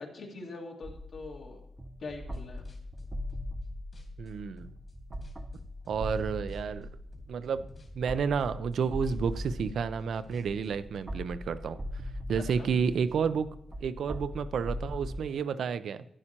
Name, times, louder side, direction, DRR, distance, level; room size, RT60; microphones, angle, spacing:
voice 1, 0.0-1.6 2.0-2.7 12.4-12.7, left 3 dB, 65° left, 0 dB, 2.0 m, -43 dB
sound 1, 0.8-15.2, left 1 dB, 20° right, 0.6 m, -40 dB
sound 2, 2.2-3.7 3.9-6.2 6.5-6.9 7.1-11.0, left 2 dB, 45° left, 2.2 m, -54 dB
voice 2, 4.2-4.7 5.9-6.9 7.3-7.7 7.9-11.8 12.3-13.5 13.8-16.1, right 6 dB, 75° right, 13 dB, 0.4 m, -30 dB
11.0 x 9.8 x 2.9 m, 0.72 s
cardioid pair, 95°, 0 cm